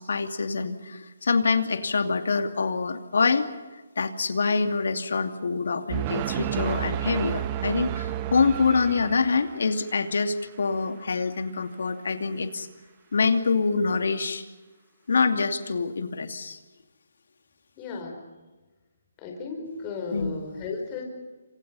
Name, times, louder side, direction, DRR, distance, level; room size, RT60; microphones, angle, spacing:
voice 1, 0.0-3.5 4.0-12.7 13.1-14.4 15.1-16.6 20.1-20.3, left 4 dB, 70° left, 7 dB, 2.6 m, -25 dB
sound 1, 5.9-9.7, right 12 dB, 25° right, 1.3 m, -31 dB
voice 2, 17.8-18.2 19.2-21.0, left 4 dB, 25° left, 2 dB, 5.1 m, -34 dB
28.0 x 26.5 x 5.6 m, 1.2 s
hypercardioid pair, 155°, 0 cm